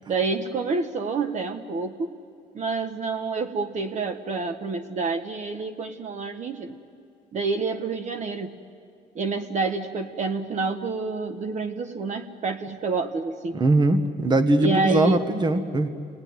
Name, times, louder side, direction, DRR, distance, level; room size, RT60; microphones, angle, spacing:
voice 1, 0.1-2.1 2.5-6.8 7.3-8.6 9.1-13.6 14.6-15.2, right 4 dB, 45° right, 7 dB, 1.3 m, -28 dB
voice 2, 13.5-15.9, right 2 dB, 25° right, 9 dB, 1.4 m, -21 dB
29.0 x 19.0 x 9.6 m, 2.4 s
cardioid pair, 110°, 17 cm